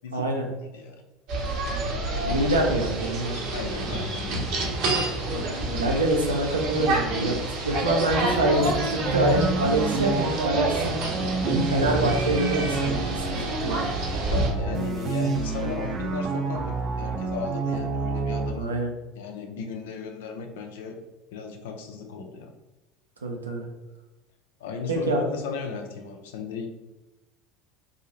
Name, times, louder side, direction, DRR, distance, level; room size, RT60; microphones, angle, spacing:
voice 1, 0.1-0.5 2.2-3.4 5.7-7.4 7.6-11.0 11.7-13.9 15.6-15.7 18.5-18.9 23.2-23.6 24.9-25.2, right 1 dB, 80° right, 1 dB, 0.6 m, -25 dB
sound 1, 1.3-14.5, right 2 dB, 55° right, 0.9 m, -28 dB
voice 2, 3.5-4.5 14.2-18.7 19.1-21.0 21.3-22.5 24.6-26.7, left 5 dB, 65° left, 4 dB, 0.5 m, -36 dB
sound 2, 9.1-18.5, right 4 dB, 35° right, 0.4 m, -29 dB
3.9 x 2.7 x 3.0 m, 1.1 s
figure-of-eight pair, 70°, 0 cm